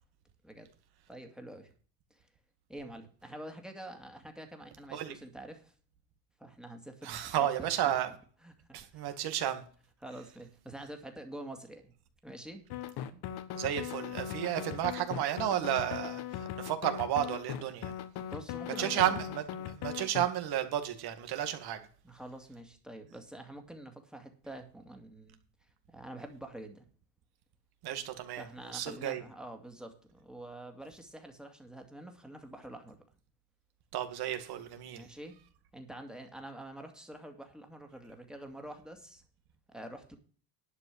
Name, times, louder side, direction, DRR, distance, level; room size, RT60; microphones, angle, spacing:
voice 1, 1.1-1.7 2.1-2.3 2.7-5.7 6.4-8.0 8.4-9.2 10.0-11.9 12.2-12.6 18.3-19.3 22.0-25.4 25.9-26.9 28.4-33.0 34.9-35.4 35.7-39.2 39.7-40.2, right 1 dB, ahead, 2.3 m, -47 dB
voice 2, 7.0-8.1 8.7-9.6 13.5-17.9 18.8-21.9 27.8-28.5 28.7-29.2 33.9-35.0, right 11 dB, 55° right, 2.2 m, -32 dB
sound 1, 12.7-20.3, left 10 dB, 60° left, 1.4 m, -39 dB
11.5 x 5.2 x 8.5 m
cardioid pair, 125°, 45 cm